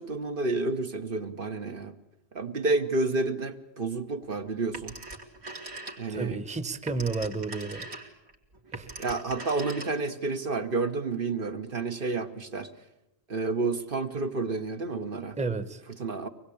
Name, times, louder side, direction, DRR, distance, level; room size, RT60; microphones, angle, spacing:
voice 1, 0.0-1.9 2.3-4.9 6.0-6.4 9.0-12.7 13.3-15.4 16.0-16.3, right 3 dB, 55° right, 1.3 m, -30 dB
Telephone, 4.7-6.3 6.6-10.2, right 2 dB, 75° right, 3.0 m, -41 dB
voice 2, 6.1-7.9 8.7-8.9 15.4-15.8, right 4 dB, 5° right, 1.0 m, -31 dB
25.0 x 20.0 x 8.5 m
omnidirectional pair, 1.1 m